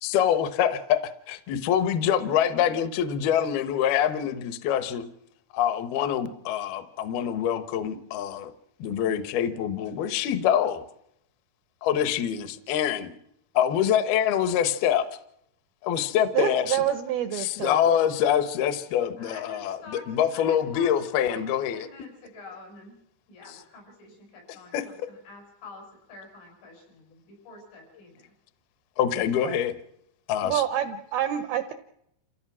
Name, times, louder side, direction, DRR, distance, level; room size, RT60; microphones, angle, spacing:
voice 1, 0.0-5.1 5.5-8.5 8.8-10.8 11.8-13.1 13.6-15.1 15.8-16.8 17.4-21.9 24.7-24.8 29.0-29.8 30.3-30.6, left 9 dB, 70° left, 12 dB, 2.7 m, -25 dB
voice 2, 16.3-18.0 29.4-29.6 30.4-31.7, right 11 dB, 80° right, 9 dB, 2.2 m, -27 dB
voice 3, 19.2-20.9 21.2-23.0 23.3-28.3, left 3 dB, 85° left, 1 dB, 9.5 m, -47 dB
28.5 x 16.5 x 6.1 m, 0.75 s
omnidirectional pair, 5.5 m